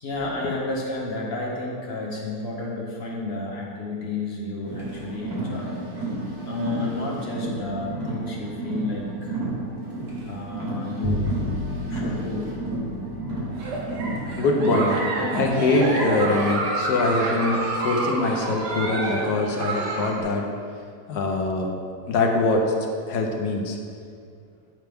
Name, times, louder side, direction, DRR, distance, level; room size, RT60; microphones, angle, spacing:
voice 1, 0.0-5.8 6.4-9.4 10.3-11.4 11.9-12.6 19.6-19.7, left 2 dB, 45° left, -3 dB, 1.0 m, -31 dB
Car, 4.6-15.8, right 2 dB, 70° right, 1.8 m, -32 dB
Bowed string instrument, 11.0-17.5, left 1 dB, 30° right, 0.9 m, -35 dB
Giggle, 13.5-20.2, right 2 dB, 85° right, 1.6 m, -28 dB
voice 2, 14.3-15.0 15.3-20.5 21.1-21.8 22.1-22.7 23.1-23.8, left 2 dB, 80° left, 1 dB, 1.3 m, -23 dB
9.1 x 4.5 x 3.4 m, 2.2 s
omnidirectional pair, 1.7 m